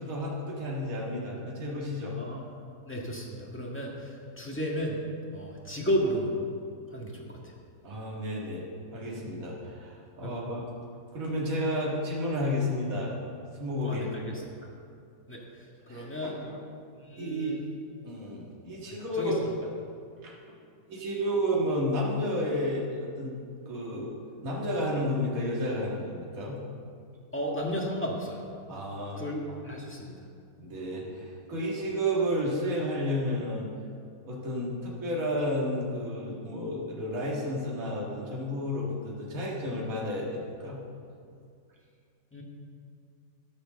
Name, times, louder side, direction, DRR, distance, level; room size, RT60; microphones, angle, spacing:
voice 1, 0.0-2.2 7.8-8.7 8.9-10.7 11.1-13.2 13.5-14.0 15.9-16.6 17.2-17.6 18.0-19.4 20.2-20.3 20.9-23.4 23.7-24.1 24.4-26.6 28.7-29.6 30.6-33.7 34.2-40.8, equal, 60° right, -4 dB, 2.2 m, -31 dB
voice 2, 2.9-5.0 5.3-6.3 6.9-7.5 10.2-10.3 13.8-14.3 14.6-14.7 15.3-15.4 15.9-16.4 17.0-17.6 19.2-19.3 27.3-28.4 29.2-30.1 42.3-42.4, equal, 10° left, -3 dB, 1.7 m, -33 dB
13.0 x 6.5 x 6.4 m, 2.3 s
omnidirectional pair, 1.7 m